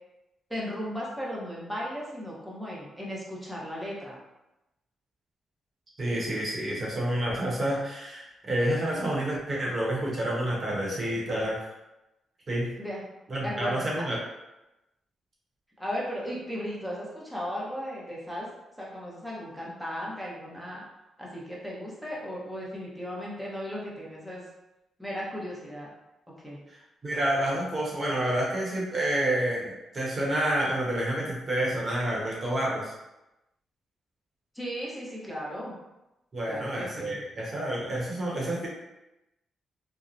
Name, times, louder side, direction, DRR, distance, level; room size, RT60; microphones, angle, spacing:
voice 1, 0.5-4.2 12.8-13.0 13.4-13.8 15.8-18.5 18.8-20.8 21.2-24.5 25.0-25.9 26.4-26.6 34.5-35.8 36.5-37.2, equal, ahead, -5 dB, 0.8 m, -36 dB
voice 2, 6.0-11.6 12.5-12.7 13.3-14.2 27.0-32.9 36.3-38.7, right 1 dB, 40° right, -4 dB, 0.9 m, -29 dB
2.8 x 2.1 x 2.5 m, 0.96 s
cardioid pair, 90°, 0 cm